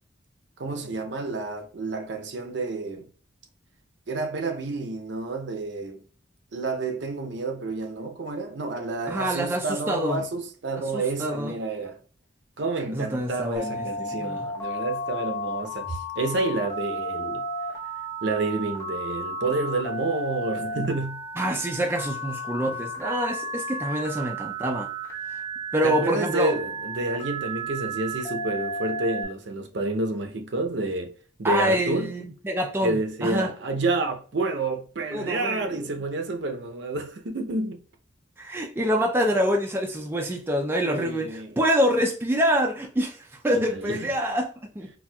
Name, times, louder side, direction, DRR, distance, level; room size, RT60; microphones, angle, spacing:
voice 1, 0.6-3.1 4.1-6.0 6.5-12.0 12.6-17.4 18.2-21.2 25.8-31.1 31.4-32.1 32.8-37.8 40.7-41.6 43.5-44.1, right 2 dB, 65° right, 0.6 m, -29 dB
voice 2, 9.1-10.2 10.9-11.5 12.9-14.4 21.4-24.9 25.3-25.4 25.7-26.5 31.4-33.5 35.1-35.8 38.4-44.5 44.8-44.9, equal, 10° right, 0.3 m, -26 dB
Telephone, 13.6-29.3, right 1 dB, 15° left, 0.8 m, -33 dB
4.2 x 2.2 x 2.2 m
head